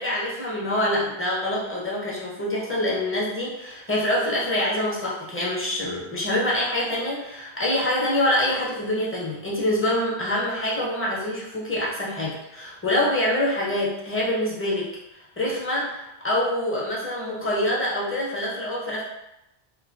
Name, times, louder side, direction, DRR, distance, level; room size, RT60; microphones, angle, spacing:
voice 1, 0.0-14.9 15.4-19.0, left 1 dB, 15° left, -5 dB, 0.5 m, -25 dB
3.1 x 2.0 x 2.5 m, 0.89 s
omnidirectional pair, 1.0 m